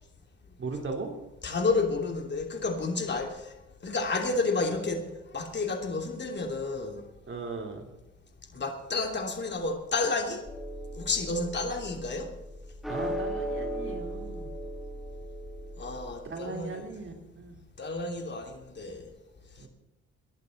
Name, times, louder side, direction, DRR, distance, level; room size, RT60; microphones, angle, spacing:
voice 1, 0.6-1.1 7.3-7.9 12.9-14.5 16.2-17.6 19.6-19.7, right 4 dB, 40° right, 1 dB, 3.9 m, -37 dB
voice 2, 1.4-3.5 3.8-5.0 5.3-7.0 8.5-10.4 11.0-12.3 15.8-16.9 17.8-19.1, left 3 dB, 35° left, 3 dB, 2.9 m, -30 dB
sound 1, 10.4-16.1, equal, ahead, 2.2 m, -37 dB
23.0 x 11.0 x 4.2 m, 0.96 s
cardioid pair, 90°, 30 cm